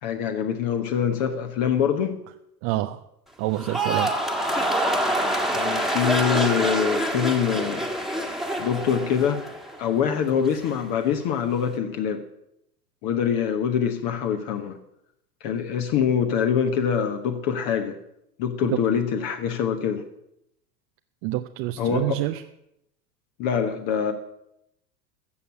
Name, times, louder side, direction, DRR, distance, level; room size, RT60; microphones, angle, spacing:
voice 1, 0.0-2.2 5.5-7.9 8.6-9.5 9.8-12.2 13.0-14.8 15.4-18.0 18.4-20.0 21.8-22.2 23.4-24.1, left 7 dB, 45° left, 6 dB, 1.4 m, -24 dB
voice 2, 2.6-3.0 3.4-4.1 18.7-18.8 21.2-22.4, right 16 dB, 35° right, 7 dB, 0.6 m, -27 dB
sound 1, 3.5-9.9 10.2-10.7, right 1 dB, ahead, 1.6 m, -26 dB
14.0 x 7.0 x 8.4 m, 0.80 s
figure-of-eight pair, 90°, 49 cm